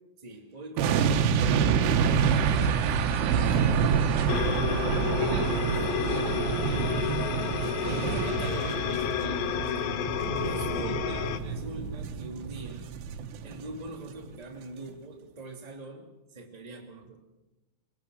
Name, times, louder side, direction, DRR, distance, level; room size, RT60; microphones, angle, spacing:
voice 1, 0.2-2.4 3.2-5.4 5.8-7.0 7.8-9.7 10.4-12.9 13.4-17.2, right 2 dB, 20° right, 1 dB, 1.0 m, -42 dB
sound 1, 0.8-13.9 14.2-14.4, right 7 dB, 80° right, 3.8 m, -27 dB
sound 2, 1.8-8.3, right 8 dB, 60° right, 3.1 m, -41 dB
sound 3, 4.3-11.4, left 8 dB, 90° left, 2.0 m, -30 dB
23.5 x 22.5 x 6.3 m, 1.1 s
omnidirectional pair, 5.6 m